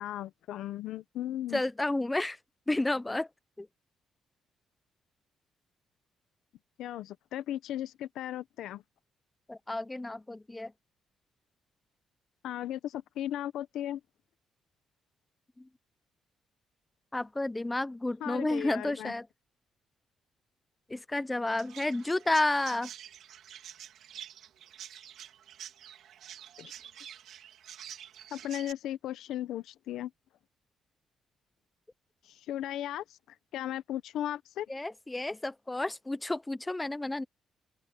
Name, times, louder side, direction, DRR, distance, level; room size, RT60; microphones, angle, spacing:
voice 1, 0.0-1.6 6.8-8.8 12.4-14.0 18.2-19.1 26.6-26.7 28.3-30.1 32.3-33.0 33.5-34.7, left 12 dB, 80° left, 1.1 m, -36 dB
voice 2, 1.5-2.4 2.7-3.3 3.6-3.7 9.5-10.7 17.1-19.3 20.9-22.9 34.7-37.2, left 2 dB, 15° left, 0.7 m, -31 dB
Chirp tweet, 21.6-28.7, right 10 dB, 75° right, 2.7 m, -48 dB
open air
cardioid pair, 90°, 0 cm